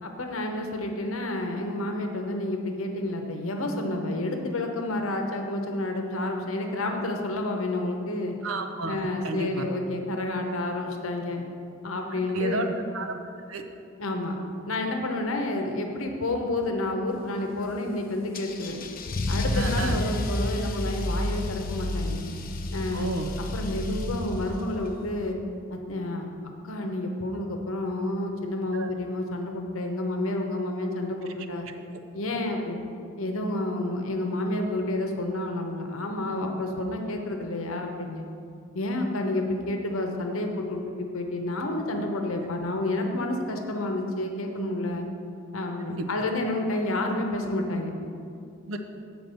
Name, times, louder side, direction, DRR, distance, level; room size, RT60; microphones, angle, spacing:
voice 1, 0.0-8.4 8.9-11.4 11.8-12.7 14.0-14.4 14.7-18.8 19.3-22.2 22.7-23.1 23.5-25.4 25.7-26.3 26.6-31.7 32.1-32.8 33.2-38.2 38.7-45.0 45.5-47.9, left 2 dB, 80° left, 3 dB, 0.8 m, -30 dB
voice 2, 8.4-9.7 12.3-12.7 12.9-13.2 13.5-13.7 19.5-20.0 22.9-23.3 28.7-28.9 31.6-32.0 45.9-46.1 48.7-48.8, right 2 dB, 75° right, 6 dB, 0.7 m, -32 dB
Car / Engine starting / Accelerating revving vroom, 18.3-24.8, left 1 dB, 45° left, 0.6 m, -30 dB
7.9 x 4.7 x 6.7 m, 2.4 s
head